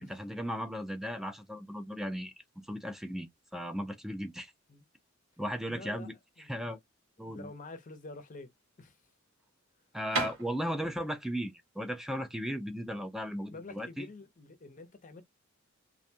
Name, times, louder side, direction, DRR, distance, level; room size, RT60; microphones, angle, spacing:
voice 1, 0.0-4.5 5.4-6.1 6.5-6.8 7.2-7.5 9.9-14.1, equal, ahead, 0.4 m, -36 dB
voice 2, 5.7-6.1 6.4-6.7 7.2-8.5 8.8-9.0 13.5-15.2, left 3 dB, 40° left, 0.6 m, -48 dB
sound 1, 8.3-13.9, right 3 dB, 75° right, 1.2 m, -40 dB
2.5 x 2.2 x 2.7 m
head